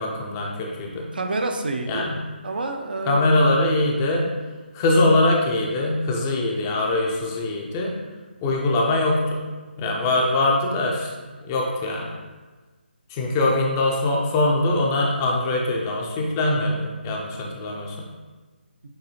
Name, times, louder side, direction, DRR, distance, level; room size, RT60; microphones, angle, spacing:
voice 1, 0.0-1.1 1.9-2.1 3.1-4.3 4.7-7.9 8.4-9.4 9.8-11.1 11.4-12.1 13.1-18.0, left 2 dB, 20° left, -1 dB, 0.4 m, -22 dB
voice 2, 1.1-2.1 2.4-3.6, right 2 dB, 60° right, 5 dB, 0.5 m, -28 dB
6.6 x 2.7 x 2.8 m, 1.3 s
figure-of-eight pair, 150°, 6 cm